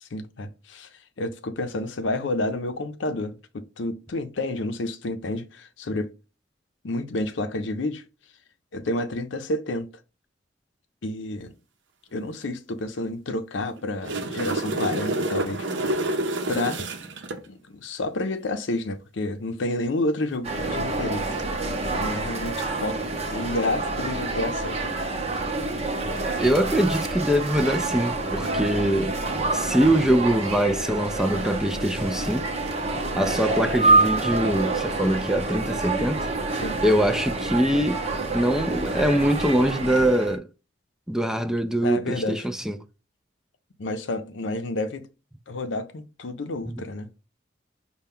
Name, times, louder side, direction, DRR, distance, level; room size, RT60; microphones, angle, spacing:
voice 1, 0.0-0.9 1.2-6.1 6.8-8.0 8.7-9.9 11.0-11.5 12.1-16.1 16.5-16.8 17.5-21.4 21.9-24.9 36.6-36.8 41.8-42.5 43.8-45.1 45.5-47.1, left 2 dB, 80° left, 0.6 m, -30 dB
sound 1, 13.8-17.4 21.2-21.4, right 2 dB, 75° right, 0.7 m, -28 dB
sound 2, 20.4-40.4, right 2 dB, 35° right, 0.7 m, -27 dB
voice 2, 26.4-29.2 29.5-32.5 33.2-36.3 36.8-38.0 38.3-40.5 41.1-42.8 46.6-46.8, right 1 dB, 5° right, 0.4 m, -23 dB
5.5 x 2.2 x 3.6 m
head